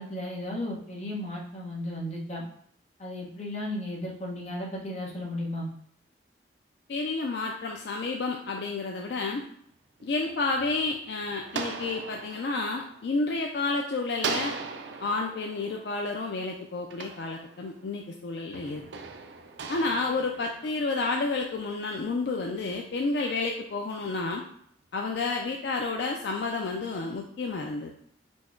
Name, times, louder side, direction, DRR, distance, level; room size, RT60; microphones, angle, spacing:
voice 1, 0.0-2.4 3.0-5.7, left 1 dB, 40° left, -2 dB, 0.9 m, -34 dB
voice 2, 6.9-9.4 10.0-14.6 15.0-18.8 19.7-24.4 24.9-27.9, left 3 dB, 65° left, 2 dB, 0.4 m, -30 dB
sound 1, 10.0-13.7 14.2-17.9 18.5-21.2, right 4 dB, 70° right, 0.4 m, -39 dB
4.4 x 2.2 x 4.4 m, 0.64 s
head